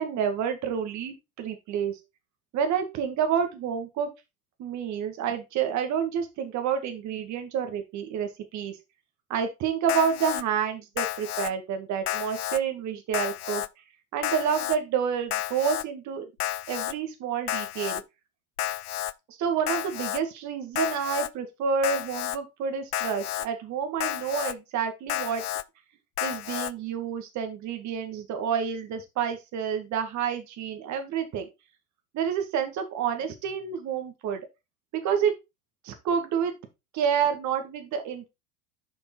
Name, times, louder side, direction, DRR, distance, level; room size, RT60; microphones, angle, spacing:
voice 1, 0.0-2.0 2.5-4.1 4.6-8.7 9.3-13.6 14.1-16.3 16.7-18.0 19.3-25.4 26.2-31.5 32.1-34.4 34.9-35.3 35.8-36.5 36.9-38.3, right 7 dB, 40° right, 6 dB, 2.0 m, -29 dB
Alarm, 9.9-10.4 11.0-11.5 12.1-12.6 13.1-13.7 14.2-14.8 15.3-15.8 16.4-16.9 17.5-18.0 18.6-19.1 19.7-20.2 20.8-21.3 21.8-22.4 22.9-23.5 24.0-24.5 25.1-25.6 26.2-26.7, left 13 dB, 85° left, 0.5 m, -31 dB
7.0 x 5.3 x 3.9 m, 0.24 s
hypercardioid pair, 95°, 44 cm